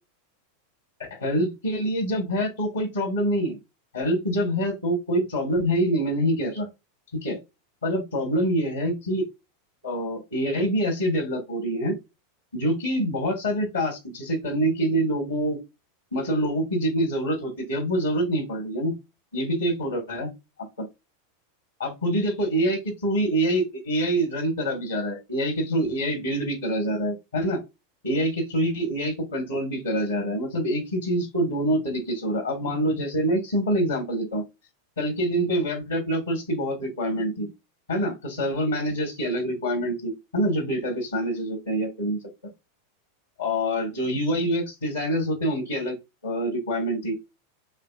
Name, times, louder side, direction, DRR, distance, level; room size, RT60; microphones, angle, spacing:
voice 1, 1.2-3.6 3.9-6.7 7.2-7.4 7.8-9.2 9.8-11.9 12.5-15.6 16.1-18.9 19.3-20.3 20.8-20.9 21.8-27.6 28.0-34.4 35.0-37.5 37.9-42.2 43.4-46.0 46.2-47.2, right 1 dB, 85° left, 2 dB, 1.5 m, -26 dB
4.1 x 3.3 x 2.4 m, 0.23 s
figure-of-eight pair, 90°, 0 cm